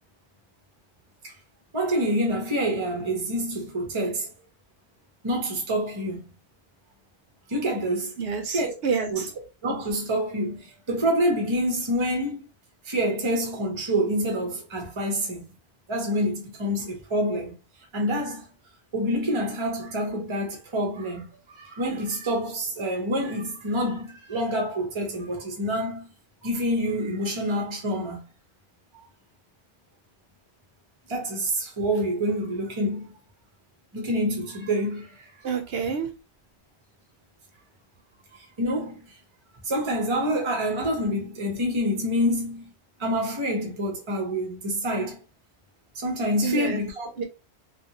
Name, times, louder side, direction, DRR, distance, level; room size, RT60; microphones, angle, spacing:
voice 1, 1.7-4.3 5.2-6.3 7.5-8.1 8.5-8.7 9.1-9.2 9.6-12.5 12.8-15.5 15.9-17.6 17.9-18.5 18.9-26.1 26.4-28.2 31.1-33.1 33.9-35.3 38.3-39.1 39.6-42.7 43.0-45.2 45.9-47.1, equal, 30° right, 0.8 m, -27 dB
voice 2, 8.2-9.3 35.4-36.1 46.4-46.8 47.2-47.3, right 6 dB, 65° right, 0.9 m, -28 dB
2.7 x 2.5 x 2.8 m
omnidirectional pair, 1.1 m